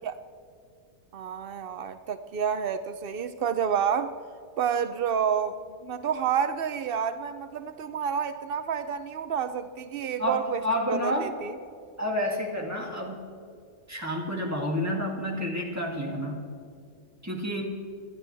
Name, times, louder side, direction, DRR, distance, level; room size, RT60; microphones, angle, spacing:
voice 1, 1.1-4.1 4.6-10.6 10.9-11.5, right 7 dB, 85° right, 11 dB, 0.5 m, -29 dB
voice 2, 10.2-11.3 12.0-13.2 13.9-16.4 17.2-17.6, equal, 10° right, -1 dB, 2.4 m, -29 dB
27.0 x 12.0 x 3.4 m, 2.4 s
omnidirectional pair, 1.7 m